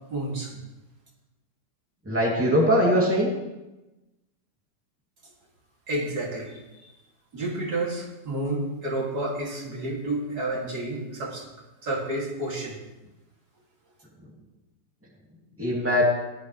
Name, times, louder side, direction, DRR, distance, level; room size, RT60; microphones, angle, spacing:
voice 1, 0.1-0.5 5.9-6.9 7.3-11.5 11.8-12.8, right 2 dB, 70° right, -3 dB, 2.9 m, -30 dB
voice 2, 2.1-3.3 15.6-16.0, equal, 10° right, -3 dB, 2.5 m, -21 dB
16.5 x 11.5 x 3.2 m, 1.0 s
omnidirectional pair, 1.8 m